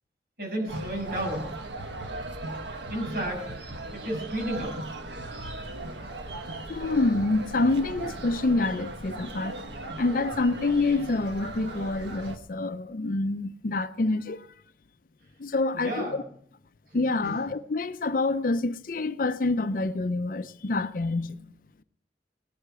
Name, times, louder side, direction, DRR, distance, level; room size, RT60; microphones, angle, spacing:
voice 1, 0.4-1.5 2.9-3.4 3.9-4.7 15.7-16.2 17.2-17.4, right 1 dB, 55° right, 6.6 m, -32 dB
sound 1, 0.7-12.4, right 2 dB, 80° right, 1.4 m, -38 dB
voice 2, 6.7-9.6 10.0-14.5 15.4-16.2 16.9-21.4, left 2 dB, 50° left, 0.5 m, -27 dB
18.5 x 11.5 x 4.8 m
head